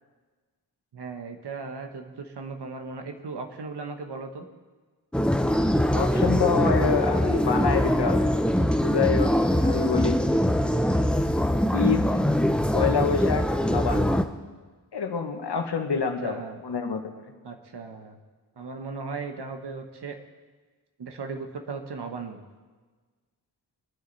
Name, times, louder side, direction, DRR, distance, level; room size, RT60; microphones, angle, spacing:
voice 1, 0.9-4.5 16.2-16.6 17.4-18.2 18.5-20.2 21.0-22.4, right 4 dB, 90° right, 5 dB, 1.4 m, -37 dB
sound 1, 5.1-14.2, equal, 5° left, 0.6 m, -23 dB
voice 2, 5.9-8.3 8.8-10.2 11.7-12.2 12.7-14.2 14.9-17.2, left 6 dB, 90° left, 4 dB, 1.3 m, -27 dB
23.0 x 10.0 x 4.2 m, 1.4 s
wide cardioid pair, 100°, 39 cm